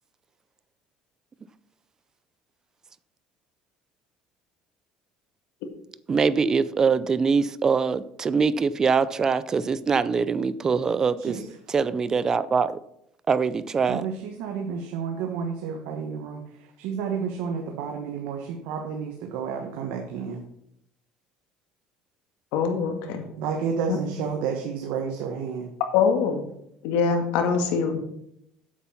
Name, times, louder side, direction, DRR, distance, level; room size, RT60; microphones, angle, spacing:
voice 1, 6.1-11.3 11.7-12.8 13.3-14.0, right 5 dB, 25° right, 16 dB, 0.5 m, -23 dB
voice 2, 11.2-11.8 13.9-20.4 23.4-25.7, right 6 dB, 75° right, 2 dB, 1.4 m, -31 dB
voice 3, 22.5-23.3 23.9-24.0 25.9-26.4 26.8-28.0, left 6 dB, 80° left, 5 dB, 1.9 m, -23 dB
8.2 x 7.8 x 5.8 m, 0.76 s
cardioid pair, 140°, 2 cm